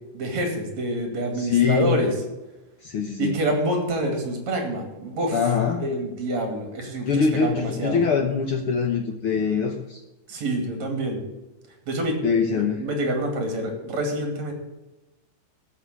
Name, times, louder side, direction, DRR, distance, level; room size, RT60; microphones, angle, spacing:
voice 1, 0.1-2.1 3.2-5.5 5.8-8.0 10.3-11.2 11.9-12.2 12.6-14.5, right 1 dB, 55° right, 3 dB, 3.5 m, -27 dB
voice 2, 1.4-2.0 2.8-3.4 5.3-5.8 7.1-10.0 12.2-12.8, left 6 dB, 75° left, 3 dB, 1.2 m, -23 dB
13.5 x 6.1 x 8.6 m, 1.0 s
omnidirectional pair, 3.9 m